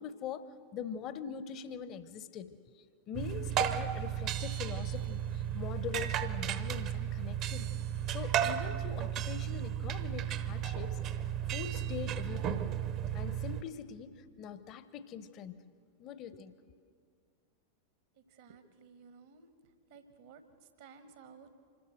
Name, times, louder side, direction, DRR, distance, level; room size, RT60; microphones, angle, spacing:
voice 1, 0.0-7.7 8.1-11.0 11.5-12.6 13.1-15.6 16.0-16.5, left 8 dB, 35° left, 14 dB, 0.9 m, -43 dB
sound 1, 3.1-13.6, right 10 dB, 35° right, 0.8 m, -34 dB
voice 2, 18.1-19.5 19.9-21.6, right 5 dB, 60° right, 10 dB, 1.3 m, -56 dB
25.0 x 14.0 x 7.8 m, 2.1 s
figure-of-eight pair, 90°, 0 cm